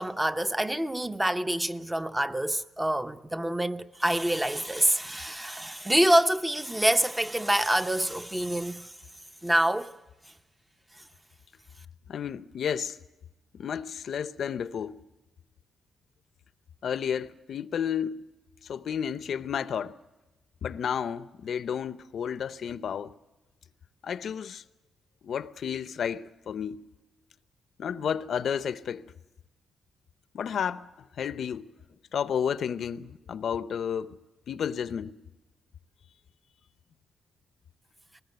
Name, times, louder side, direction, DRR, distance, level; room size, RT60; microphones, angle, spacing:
voice 1, 0.0-8.9 9.4-9.9, right 1 dB, 10° right, 0.8 m, -26 dB
voice 2, 12.1-13.0 13.5-15.0 16.8-18.2 18.6-19.9 20.6-23.1 24.0-24.6 25.2-26.8 27.8-29.1 30.3-31.7 32.1-34.2 34.5-35.2, left 8 dB, 65° left, 0.7 m, -32 dB
20.0 x 19.5 x 8.0 m
cardioid pair, 95°, 0 cm